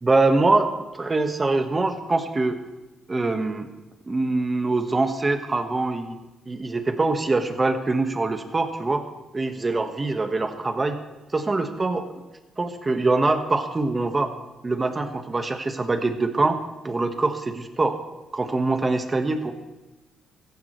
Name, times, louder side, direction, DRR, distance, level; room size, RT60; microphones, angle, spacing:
voice 1, 0.0-2.6 3.1-3.7 4.0-6.2 6.5-9.0 9.3-11.0 11.3-12.1 12.6-14.3 14.6-16.6 16.8-18.0 18.3-19.5, right 3 dB, 25° right, 7 dB, 1.4 m, -23 dB
15.5 x 15.0 x 3.2 m, 1.1 s
cardioid pair, 90°, 0 cm